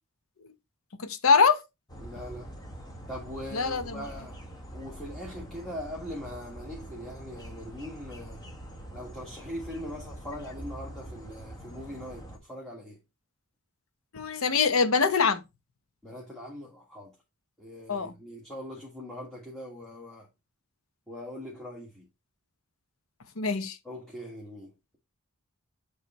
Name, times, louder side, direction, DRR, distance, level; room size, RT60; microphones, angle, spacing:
voice 1, 1.0-1.6 3.5-4.0 14.1-15.4 17.9-18.1 23.4-23.8, left 5 dB, 70° left, 0.8 m, -24 dB
sound 1, 1.9-12.4, right 1 dB, 20° left, 1.2 m, -44 dB
voice 2, 2.0-2.5 3.1-4.4 4.7-8.4 8.9-13.0 16.0-17.1 17.6-20.3 21.1-22.1 23.8-25.0, equal, 5° left, 1.6 m, -41 dB
8.1 x 3.3 x 4.2 m
head